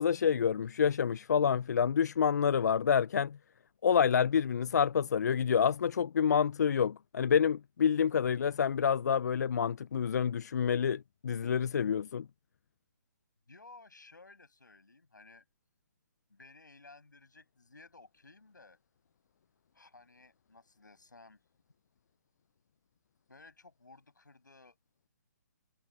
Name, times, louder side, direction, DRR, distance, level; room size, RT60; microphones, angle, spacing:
voice 1, 0.0-3.4 3.8-12.3, left 7 dB, 65° left, 0.5 m, -28 dB
voice 2, 13.5-15.4 16.3-18.8 19.7-21.4 23.3-24.8, left 3 dB, 90° left, 7.2 m, -56 dB
figure-of-eight pair, 140°, 10 cm